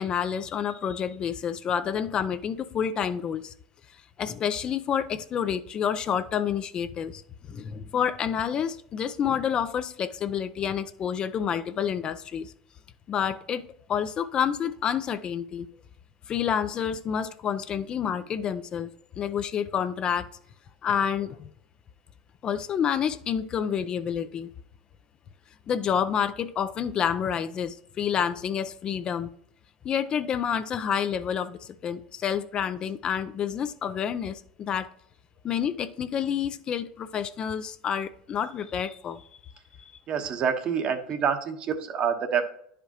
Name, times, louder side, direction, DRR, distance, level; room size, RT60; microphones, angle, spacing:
voice 1, 0.0-3.5 4.2-7.2 7.5-12.5 13.1-15.7 16.3-18.9 19.2-20.3 20.8-21.5 22.4-24.5 25.7-29.3 29.8-34.9 35.4-39.2, left 8 dB, 35° left, 0.5 m, -29 dB
voice 2, 40.1-42.6, right 7 dB, 45° right, 1.1 m, -27 dB
10.0 x 5.0 x 2.9 m
supercardioid pair, 105°, 3 cm